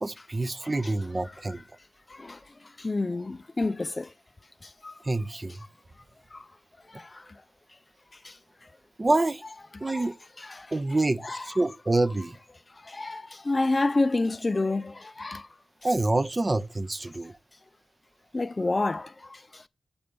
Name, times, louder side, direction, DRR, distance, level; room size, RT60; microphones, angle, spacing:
voice 1, 0.0-1.6 5.0-5.6 9.0-9.4 9.8-10.1 10.7-12.4 15.8-17.3, right 2 dB, 35° right, 0.6 m, -27 dB
voice 2, 2.8-4.1 4.8-4.9 6.3-6.4 6.9-7.2 8.2-8.3 9.7-10.1 10.4-10.7 11.2-11.5 12.8-15.5 18.3-19.6, left 2 dB, 35° left, 0.4 m, -29 dB
7.0 x 5.2 x 5.1 m
cardioid pair, 45°, 0 cm